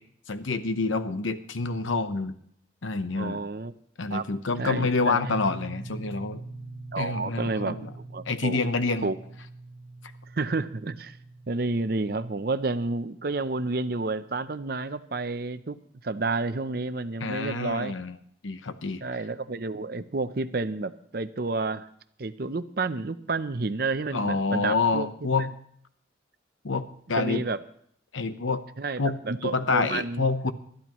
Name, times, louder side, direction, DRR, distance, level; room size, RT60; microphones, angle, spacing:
voice 1, 0.3-2.3 2.8-3.4 4.0-6.4 7.0-7.9 8.3-9.1 17.2-18.2 18.4-19.0 24.1-25.5 26.6-27.4 28.1-28.6 29.0-29.2 29.4-30.5, left 3 dB, 90° left, 11 dB, 0.9 m, -27 dB
voice 2, 3.2-3.7 4.1-4.2 4.6-5.2 6.9-7.8 8.1-8.6 9.0-9.2 10.3-11.2 11.5-15.8 16.0-17.9 19.0-21.9 22.2-25.1 27.2-27.6 28.8-30.3, right 3 dB, 50° right, 12 dB, 0.6 m, -30 dB
sound 1, 5.1-14.6, right 2 dB, 55° left, 6.1 m, -44 dB
20.5 x 13.0 x 3.1 m, 0.66 s
head